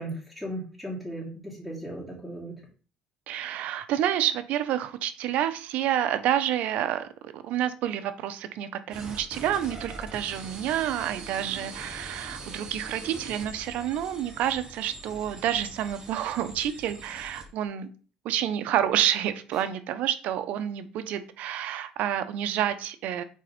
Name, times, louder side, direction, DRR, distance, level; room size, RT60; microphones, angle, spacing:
voice 1, 0.0-2.5, right 1 dB, ahead, -7 dB, 3.0 m, -36 dB
voice 2, 3.3-17.9 18.2-23.2, right 11 dB, 70° right, 10 dB, 0.9 m, -29 dB
sound 1, 8.9-17.5, right 3 dB, 30° right, 3.5 m, -42 dB
6.6 x 4.4 x 5.2 m, 0.39 s
cardioid pair, 110°, 3 cm